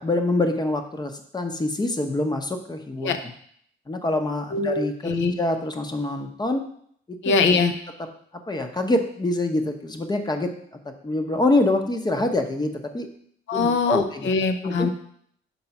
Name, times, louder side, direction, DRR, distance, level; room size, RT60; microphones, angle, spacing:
voice 1, 0.0-3.1 3.9-6.6 7.1-7.3 8.0-8.1 8.5-10.5 10.8-13.1 13.5-14.3 14.6-14.9, left 2 dB, 20° left, 6 dB, 0.9 m, -25 dB
voice 2, 4.5-5.3 7.2-7.7 13.5-14.9, left 4 dB, 70° left, 8 dB, 0.8 m, -22 dB
5.6 x 3.9 x 5.8 m, 0.64 s
cardioid pair, 90°, 20 cm